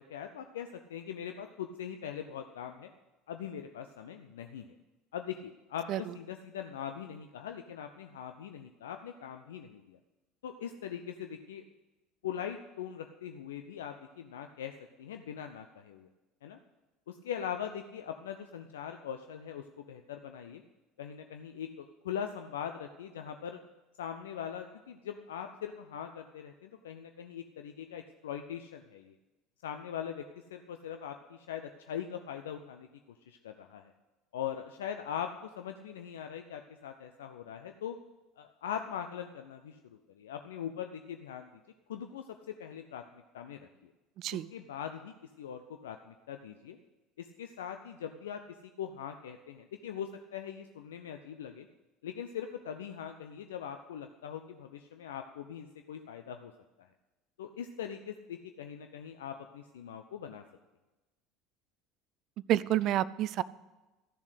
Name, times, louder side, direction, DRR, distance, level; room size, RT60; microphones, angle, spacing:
voice 1, 0.0-2.9 3.3-4.7 5.1-10.0 10.4-11.6 12.2-14.7 15.0-16.1 16.4-16.6 17.1-20.6 21.0-23.6 24.0-29.1 29.6-30.2 30.5-32.9 33.3-33.9 34.3-38.0 38.4-41.5 41.9-43.9 44.5-46.8 47.2-48.4 48.8-51.7 52.0-56.5 56.8-56.9 57.4-60.4, left 8 dB, 70° left, 6 dB, 0.6 m, -41 dB
voice 2, 44.2-44.5 62.5-63.4, right 13 dB, 50° right, 19 dB, 0.4 m, -29 dB
13.5 x 7.2 x 8.1 m, 1.1 s
figure-of-eight pair, 65°, 0 cm